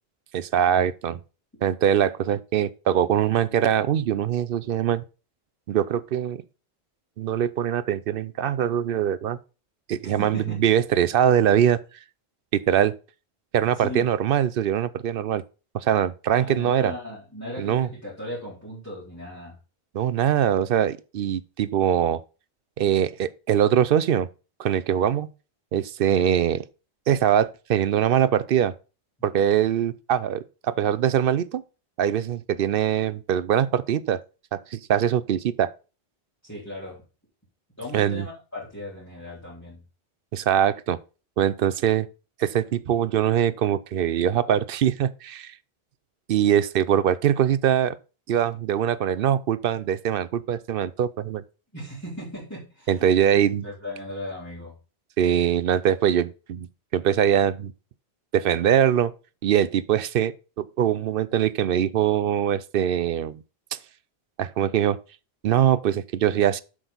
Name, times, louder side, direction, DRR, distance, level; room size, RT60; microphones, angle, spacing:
voice 1, 0.3-1.2 1.6-5.0 5.7-6.4 7.2-9.4 9.9-11.8 12.5-12.9 13.5-15.4 15.7-16.9 17.6-17.9 19.9-22.2 22.8-24.3 24.6-25.3 25.7-26.6 27.1-28.7 29.2-31.6 32.0-34.2 34.5-35.7 37.9-38.2 40.3-41.0 41.4-42.1 42.4-45.5 46.3-48.0 48.3-51.4 52.9-53.6 55.2-56.7 56.9-57.7 58.3-59.1 59.4-63.4 63.7-63.8 64.4-65.0 65.4-66.6, right 9 dB, 65° right, 0.7 m, -22 dB
voice 2, 10.0-10.6 13.8-14.1 16.3-19.6 26.0-26.3 36.4-37.0 37.8-39.8 51.7-54.7, left 1 dB, 15° left, 3.7 m, -37 dB
7.9 x 6.3 x 3.9 m
omnidirectional pair, 1.1 m